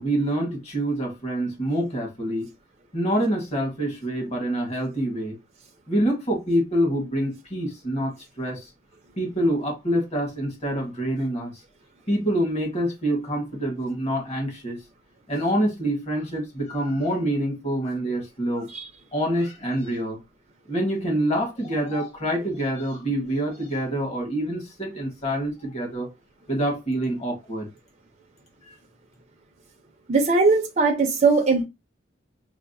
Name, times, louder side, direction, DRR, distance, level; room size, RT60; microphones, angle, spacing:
voice 1, 0.0-2.5 2.9-5.4 5.9-8.7 9.2-11.5 12.1-14.8 15.3-18.7 19.1-20.2 20.7-26.1 26.5-27.7 28.7-28.8, right 1 dB, 35° left, 1.4 m, -26 dB
voice 2, 30.1-31.7, right 4 dB, 35° right, 0.6 m, -20 dB
5.5 x 2.1 x 2.6 m
head